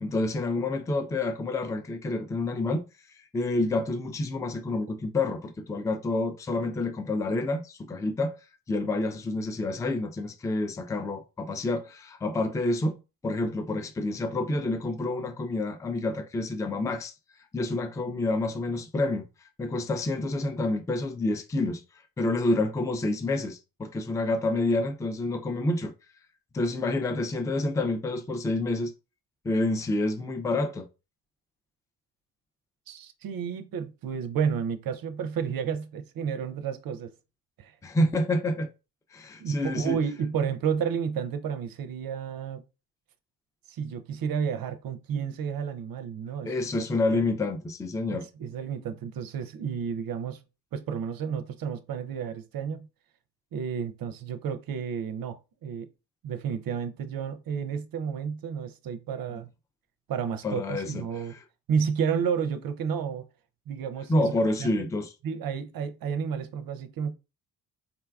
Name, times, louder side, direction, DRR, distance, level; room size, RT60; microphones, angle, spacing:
voice 1, 0.0-2.9 3.3-8.4 8.7-17.1 17.5-19.3 19.6-21.8 22.2-25.9 26.5-28.9 29.4-30.9 37.8-38.7 39.1-40.0 46.4-48.3 60.4-61.4 64.1-65.1, left 2 dB, 10° left, 0.4 m, -28 dB
voice 2, 32.9-37.1 37.6-37.7 39.4-42.6 43.7-47.2 48.1-50.4 50.7-52.9 53.5-55.9 56.2-59.5 60.1-61.3 61.7-63.3 63.7-64.3 64.6-64.7 65.2-67.2, right 7 dB, 50° right, 0.6 m, -31 dB
3.8 x 2.2 x 2.3 m
hypercardioid pair, 45°, 46 cm